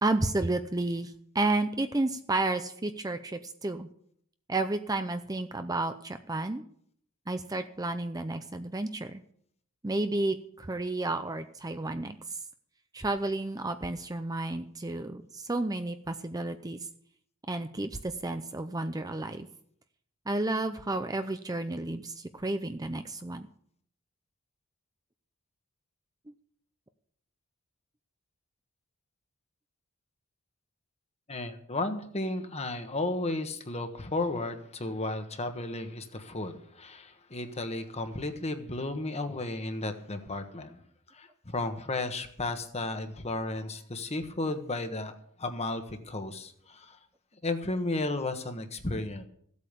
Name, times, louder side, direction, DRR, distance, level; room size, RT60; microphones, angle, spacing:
voice 1, 0.0-3.9 4.5-6.6 7.3-9.2 9.8-12.4 12.9-16.8 17.5-19.5 20.3-23.5, right 2 dB, 15° right, 9 dB, 0.6 m, -31 dB
voice 2, 31.3-40.8 41.1-45.1 45.4-47.0 47.4-49.2, left 2 dB, 30° left, 7 dB, 1.4 m, -34 dB
15.5 x 8.4 x 6.9 m, 0.64 s
head